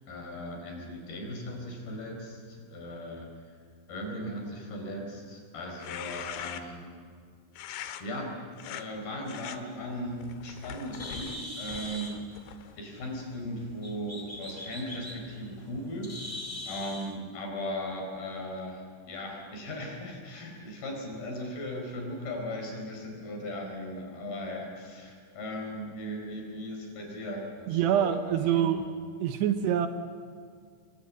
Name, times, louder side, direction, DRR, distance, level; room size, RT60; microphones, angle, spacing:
voice 1, 0.1-3.5 3.9-6.9 8.0-12.1 12.8-28.6 29.4-29.6, equal, 55° left, 1 dB, 6.2 m, -38 dB
sound 1, 5.6-6.9 7.6-8.0 8.5-8.8 9.3-9.6 10.2-12.8, left 10 dB, 85° left, 3.4 m, -42 dB
Bird, 9.9-17.1, left 1 dB, 40° left, 0.4 m, -43 dB
voice 2, 27.7-28.9 29.2-29.9, right 10 dB, 75° right, 8 dB, 2.9 m, -25 dB
28.5 x 22.5 x 7.4 m, 2.1 s
omnidirectional pair, 5.2 m